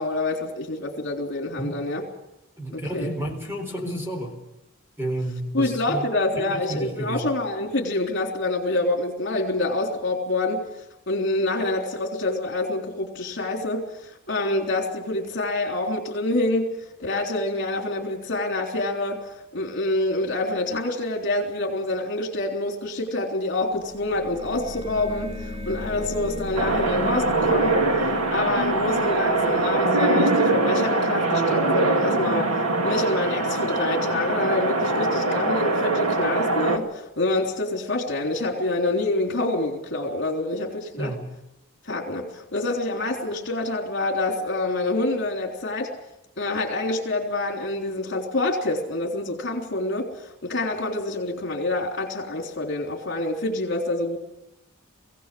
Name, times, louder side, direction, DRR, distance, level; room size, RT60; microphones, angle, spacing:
voice 1, 0.0-2.0 2.7-3.1 5.5-10.7 11.1-25.4 25.7-27.8 28.3-32.5 32.8-41.1 41.8-45.9 46.4-50.1 50.4-54.2, left 2 dB, 55° left, 1 dB, 3.5 m, -26 dB
voice 2, 2.6-4.3 5.0-6.1 6.4-7.3 41.0-41.3, right 1 dB, 10° right, 2 dB, 4.0 m, -31 dB
sound 1, 23.7-30.4, left 1 dB, 30° right, 7.4 m, -37 dB
sound 2, 26.5-36.8, right 2 dB, 80° right, 2.2 m, -23 dB
22.0 x 17.0 x 7.7 m, 0.90 s
head